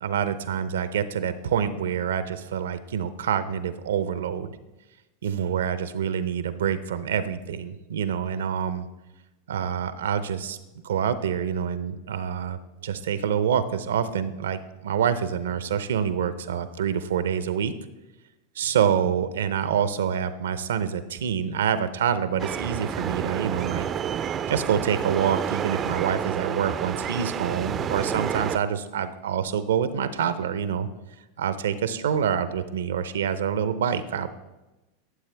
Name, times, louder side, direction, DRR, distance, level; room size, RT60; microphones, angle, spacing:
voice 1, 0.0-4.5 5.2-8.9 9.5-10.6 10.8-17.7 18.6-23.9 24.5-30.9 31.4-34.3, right 8 dB, 80° right, 13 dB, 0.6 m, -26 dB
sound 1, 22.4-28.6, right 8 dB, 35° right, 0.4 m, -29 dB
12.5 x 7.3 x 3.4 m, 1.0 s
hypercardioid pair, 100°, 0 cm